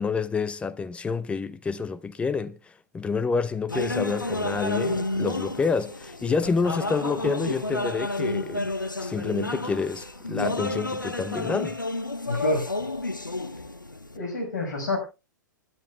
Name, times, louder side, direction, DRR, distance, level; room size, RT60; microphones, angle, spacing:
voice 1, 0.0-2.6 2.9-8.7 9.0-11.7, left 5 dB, 10° left, 0.6 m, -28 dB
sound 1, 3.7-14.2, left 2 dB, 90° left, 0.8 m, -31 dB
voice 2, 12.3-12.9 14.1-15.0, left 2 dB, 65° left, 5.6 m, -28 dB
27.5 x 10.0 x 2.3 m
figure-of-eight pair, 100°, 10 cm